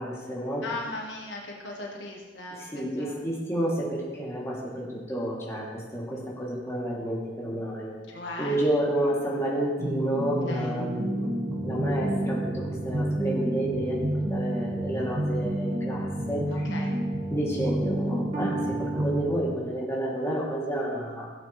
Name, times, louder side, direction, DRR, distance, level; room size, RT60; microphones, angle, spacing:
voice 1, 0.0-0.7 2.5-7.9 8.4-11.3 11.6-16.9 17.3-21.3, right 1 dB, 15° left, -6 dB, 2.7 m, -30 dB
voice 2, 0.6-3.2 8.1-8.6 10.5-10.7 16.5-16.9, left 2 dB, 75° left, -1 dB, 1.5 m, -38 dB
sound 1, 9.8-19.2, right 1 dB, 45° right, 1.4 m, -29 dB
16.5 x 8.3 x 3.2 m, 1.4 s
head